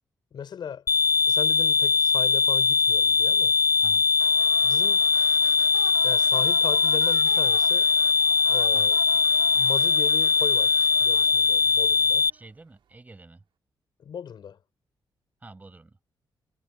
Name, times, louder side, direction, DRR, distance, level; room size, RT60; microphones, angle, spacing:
voice 1, 0.3-0.8 1.3-3.5 4.6-5.0 6.0-7.9 8.5-9.0 9.5-12.3 14.0-14.6, left 8 dB, 60° left, 5.5 m, -37 dB
sound 1, 0.9-12.3, left 5 dB, 45° left, 0.4 m, -21 dB
sound 2, 4.2-12.6, right 9 dB, 85° right, 3.5 m, -46 dB
voice 2, 12.3-13.4 15.4-16.0, right 3 dB, 20° right, 6.6 m, -47 dB
wide cardioid pair, 140°, 8 cm